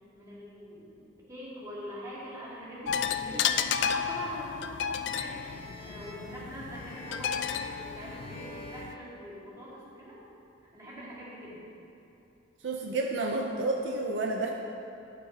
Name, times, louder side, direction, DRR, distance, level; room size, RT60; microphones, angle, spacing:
voice 1, 0.1-1.0 1.3-3.6 3.9-5.4 5.8-10.1 10.7-11.7, equal, 15° right, -8 dB, 1.7 m, -43 dB
sound 1, 2.9-8.9, left 8 dB, 60° left, 0.3 m, -32 dB
sound 2, 5.2-9.9, left 1 dB, 30° left, 0.8 m, -47 dB
voice 2, 12.6-14.5, right 2 dB, 65° right, 1 dB, 0.5 m, -30 dB
12.0 x 5.4 x 2.7 m, 2.8 s
head